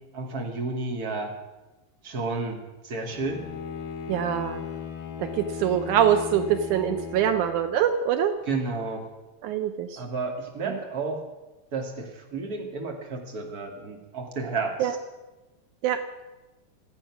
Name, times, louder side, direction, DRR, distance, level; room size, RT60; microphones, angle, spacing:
voice 1, 0.1-1.3 2.0-3.4 8.5-9.1 10.0-11.2 11.7-15.0, right 3 dB, 30° right, 2 dB, 2.1 m, -31 dB
Bowed string instrument, 3.1-7.9, left 6 dB, 65° left, 3.2 m, -37 dB
voice 2, 4.1-4.6 5.2-8.3 9.4-10.0 10.6-10.8 14.8-15.0 15.8-16.0, right 9 dB, 85° right, 8 dB, 1.7 m, -24 dB
26.5 x 9.0 x 6.0 m, 1.1 s
omnidirectional pair, 4.6 m